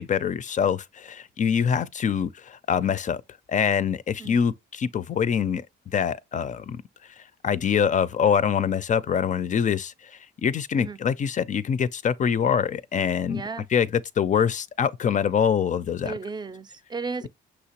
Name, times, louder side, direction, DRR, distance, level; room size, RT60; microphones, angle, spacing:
voice 1, 0.0-3.2 3.5-6.8 7.4-13.4 13.7-13.9 14.2-16.1, left 7 dB, 40° left, 0.4 m, -24 dB
voice 2, 13.3-13.7 16.0-17.3, right 4 dB, 20° right, 0.4 m, -34 dB
6.2 x 2.9 x 2.9 m
cardioid pair, 90°, 20 cm